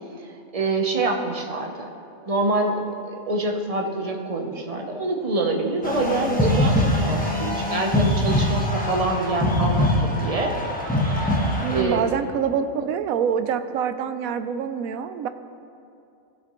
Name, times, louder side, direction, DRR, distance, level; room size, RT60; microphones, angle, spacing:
voice 1, 0.2-1.9 2.3-10.5 10.9-11.3 11.7-12.1, right 2 dB, 30° right, 2 dB, 0.7 m, -26 dB
sound 1, 5.8-11.8, left 1 dB, 5° left, 1.0 m, -23 dB
voice 2, 11.6-15.3, right 7 dB, 80° right, 10 dB, 1.0 m, -25 dB
15.5 x 7.7 x 3.1 m, 2.5 s
omnidirectional pair, 1.5 m